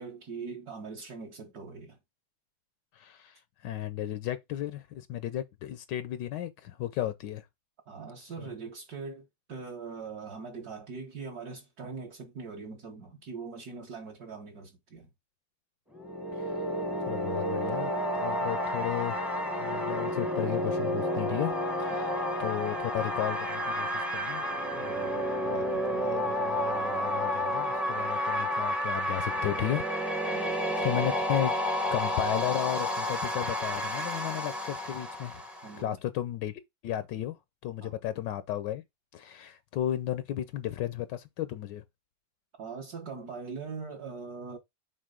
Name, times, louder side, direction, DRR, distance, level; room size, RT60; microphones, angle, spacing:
voice 1, 0.0-2.0 7.9-15.1 21.9-22.2 30.3-30.8 35.6-36.0 37.8-37.9 42.6-44.6, right 4 dB, 55° right, 1.5 m, -42 dB
voice 2, 2.9-7.4 8.4-8.5 16.4-16.5 17.1-19.3 19.6-21.5 21.8-22.1 22.4-24.5 24.8-25.6 25.9-29.8 30.2-31.5 31.9-35.5 35.8-37.4 37.6-38.8 39.1-41.8, left 12 dB, 75° left, 1.2 m, -34 dB
sound 1, 15.9-35.8, equal, ahead, 0.7 m, -31 dB
6.5 x 4.0 x 3.7 m
omnidirectional pair, 2.1 m